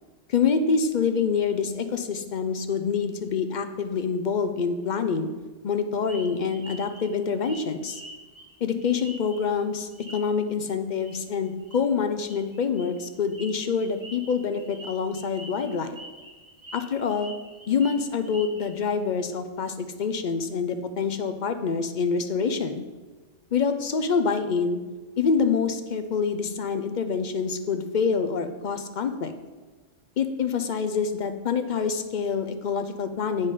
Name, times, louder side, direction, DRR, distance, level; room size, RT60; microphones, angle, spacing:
voice 1, 0.3-5.3 5.6-8.0 8.6-16.0 16.7-17.3 17.7-22.8 23.5-24.8 25.2-29.3 30.2-33.5, left 5 dB, 55° left, 8 dB, 0.5 m, -26 dB
sound 1, 6.1-9.6 9.9-10.5 10.9-11.2 11.4-11.8 12.2-18.8, right 1 dB, 35° right, 1.6 m, -45 dB
8.1 x 5.3 x 5.3 m, 1.3 s
omnidirectional pair, 1.3 m